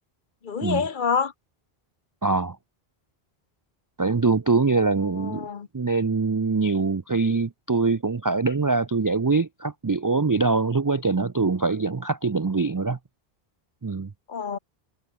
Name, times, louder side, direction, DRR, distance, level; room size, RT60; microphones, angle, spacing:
voice 1, 0.4-1.3 5.2-5.7 14.3-14.6, left 6 dB, 55° left, 1.1 m, -27 dB
voice 2, 2.2-2.6 4.0-5.5 5.7-13.0 13.8-14.1, right 4 dB, 35° right, 0.3 m, -23 dB
omnidirectional pair, 1.0 m